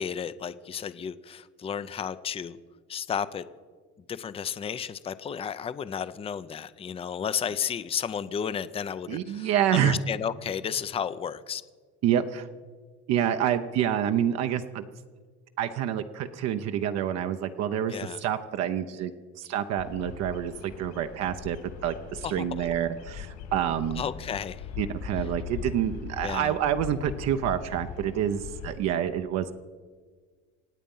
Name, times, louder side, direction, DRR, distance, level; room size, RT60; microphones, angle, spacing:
voice 1, 0.0-2.6 2.9-3.4 4.1-11.6 17.9-18.2 22.2-22.7 24.0-24.7 26.2-26.5, left 8 dB, 20° left, 14 dB, 0.5 m, -33 dB
voice 2, 9.1-10.0 12.0-12.5 13.1-14.8 15.6-19.1 19.4-21.6 21.8-24.0 24.8-29.5, right 10 dB, 60° right, 7 dB, 0.9 m, -27 dB
Bird vocalization bird call bird song, 19.8-28.8, left 7 dB, 75° left, 3.9 m, -40 dB
26.5 x 8.9 x 5.5 m, 1.5 s
cardioid pair, 135°, 29 cm